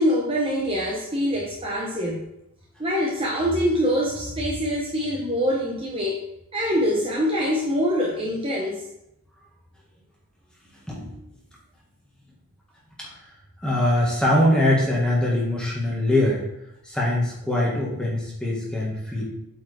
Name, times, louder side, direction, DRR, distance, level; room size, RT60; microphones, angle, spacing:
voice 1, 0.0-2.2 2.8-6.2 6.5-8.8, equal, 25° right, -3 dB, 0.9 m, -24 dB
voice 2, 10.9-11.3 13.0-13.1 13.6-16.4 16.8-19.2, left 1 dB, 5° left, -5 dB, 1.6 m, -22 dB
8.1 x 4.6 x 3.4 m, 0.80 s
head